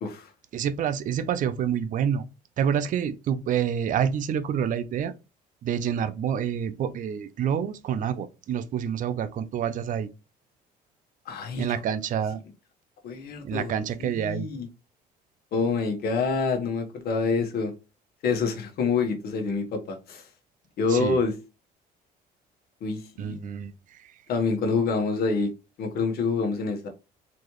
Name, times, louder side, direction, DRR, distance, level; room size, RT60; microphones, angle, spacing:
voice 1, 0.5-2.2 2.6-5.1 5.6-10.1 11.6-12.4 13.4-14.5 20.9-21.2 23.2-24.0, right 8 dB, 50° right, 0.5 m, -27 dB
voice 2, 11.3-11.7 13.0-13.7 14.0-14.7 15.5-17.7 18.2-20.2 20.8-21.3 22.8-23.4 24.3-25.5 25.8-26.9, left 4 dB, 65° left, 1.3 m, -27 dB
4.2 x 3.2 x 3.0 m
cardioid pair, 110°, 17 cm